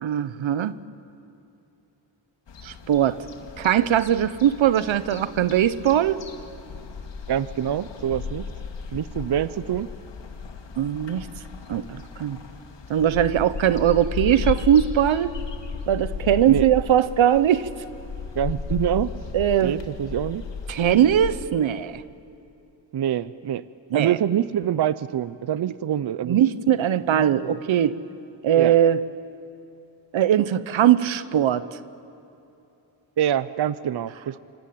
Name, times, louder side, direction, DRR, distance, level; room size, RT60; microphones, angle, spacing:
voice 1, 0.0-0.7 2.6-3.2 3.6-6.2 10.8-11.3 11.7-12.4 12.9-15.3 15.9-17.7 19.3-19.7 20.7-22.0 23.9-24.2 26.2-28.0 28.4-29.0 30.1-31.7, right 10 dB, 85° right, 15 dB, 1.0 m, -20 dB
sound 1, 2.5-21.5, left 5 dB, 70° left, 2.4 m, -35 dB
voice 2, 7.3-8.5 8.9-9.9 16.4-16.7 18.3-19.1 19.6-20.4 22.9-23.6 23.9-26.4 27.1-27.6 28.6-28.7 33.2-34.4, right 10 dB, 60° right, 16 dB, 0.7 m, -25 dB
26.5 x 25.5 x 8.6 m, 2.9 s
cardioid pair, 85°, 46 cm